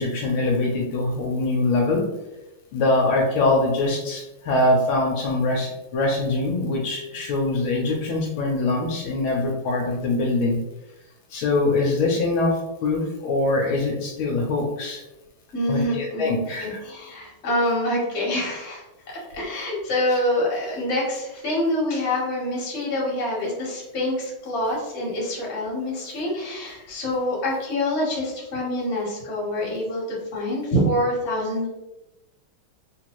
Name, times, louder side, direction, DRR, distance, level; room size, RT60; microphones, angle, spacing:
voice 1, 0.0-2.0 2.7-10.6 11.3-15.0 15.7-16.8, left 2 dB, 75° left, -1 dB, 1.4 m, -23 dB
voice 2, 15.5-18.8 19.3-31.7, left 1 dB, 40° left, -4 dB, 1.2 m, -26 dB
3.8 x 2.7 x 2.9 m, 0.99 s
omnidirectional pair, 2.3 m